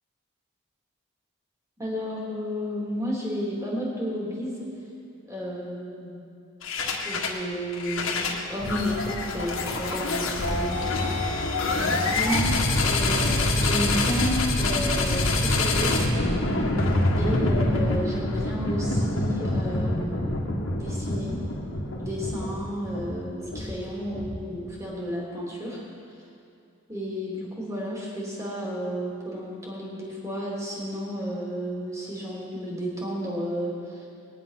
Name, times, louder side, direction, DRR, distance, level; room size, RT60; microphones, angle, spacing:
voice 1, 1.8-4.6 5.2-6.3 7.0-11.2 11.7-16.0 17.2-21.4 22.0-25.8 26.9-34.1, equal, 15° right, -4 dB, 3.0 m, -32 dB
sound 1, 6.6-7.4 7.7-24.7, left 2 dB, 75° left, 1.8 m, -26 dB
20.5 x 10.5 x 5.8 m, 2.6 s
head